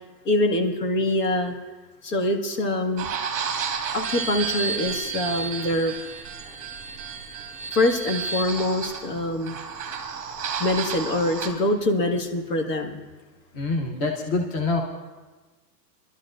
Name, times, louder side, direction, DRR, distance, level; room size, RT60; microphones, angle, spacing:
voice 1, 0.3-1.5 2.0-3.1 3.9-5.9 7.7-9.6 10.6-13.0, left 1 dB, 70° left, 3 dB, 1.9 m, -24 dB
sound 1, 3.0-11.5, right 6 dB, 15° right, 1.1 m, -31 dB
voice 2, 13.5-14.8, left 3 dB, 20° left, 2 dB, 0.7 m, -25 dB
23.5 x 12.0 x 2.5 m, 1.3 s
hypercardioid pair, 155°, 50 cm